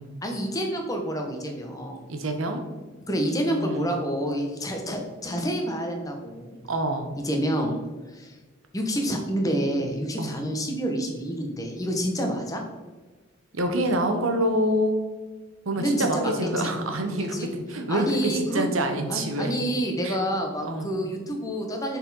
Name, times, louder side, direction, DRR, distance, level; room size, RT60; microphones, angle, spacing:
voice 1, 0.2-2.0 3.1-6.6 7.2-7.8 8.1-8.4 8.7-12.6 15.8-16.7 17.3-17.5 17.9-18.7 19.1-22.0, equal, 15° left, 2 dB, 0.8 m, -28 dB
voice 2, 2.1-2.6 3.5-3.9 6.7-7.1 10.2-10.3 13.5-15.0 15.7-19.5 20.0-20.2 20.6-20.9, right 1 dB, 80° right, 5 dB, 0.9 m, -26 dB
6.2 x 4.2 x 4.0 m, 1.3 s
head